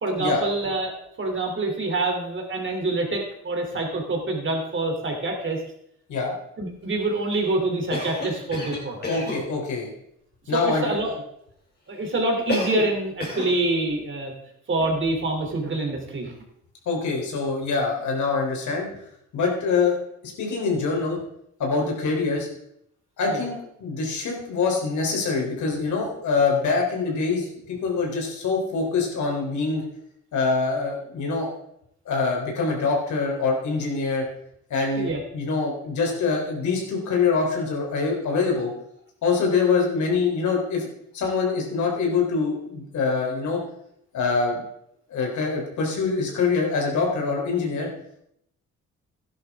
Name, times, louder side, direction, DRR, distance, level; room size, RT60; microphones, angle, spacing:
voice 1, 0.0-5.6 6.6-9.1 10.5-11.1 11.9-14.3 14.7-16.3 23.3-23.4 35.0-35.2, right 2 dB, 40° right, 2 dB, 3.1 m, -26 dB
Cough, 7.9-9.5 12.5-13.0 13.2-13.6, left 1 dB, 35° left, 3.3 m, -30 dB
voice 2, 9.1-9.9 10.5-11.1 16.9-18.9 19.3-20.0 20.2-21.2 21.6-22.5 23.2-23.5 23.8-29.8 30.3-31.5 32.1-34.3 34.7-38.7 39.2-43.6 44.1-44.6 45.1-47.9, left 4 dB, 75° left, 0 dB, 3.6 m, -24 dB
12.5 x 10.5 x 3.6 m, 0.74 s
cardioid pair, 90°, 30 cm